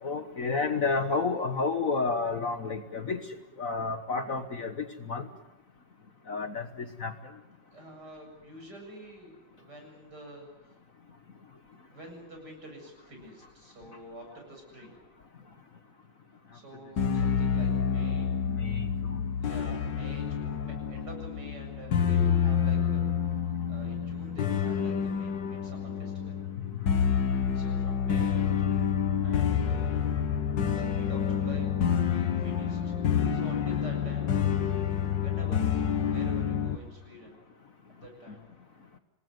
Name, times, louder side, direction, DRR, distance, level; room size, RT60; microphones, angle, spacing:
voice 1, 0.0-3.2 3.6-5.3 6.3-7.1 18.5-19.2 26.7-26.8, left 4 dB, 45° left, 8 dB, 1.5 m, -31 dB
voice 2, 7.7-10.7 11.9-15.0 16.5-18.3 19.4-23.1 23.7-26.4 27.5-30.1 30.7-32.8 33.3-34.5 34.7-37.4 37.9-38.5, right 1 dB, 55° right, 2 dB, 8.2 m, -47 dB
sound 1, 17.0-36.8, left 7 dB, 65° left, 2.0 m, -28 dB
26.5 x 20.0 x 9.3 m, 1.0 s
omnidirectional pair, 2.1 m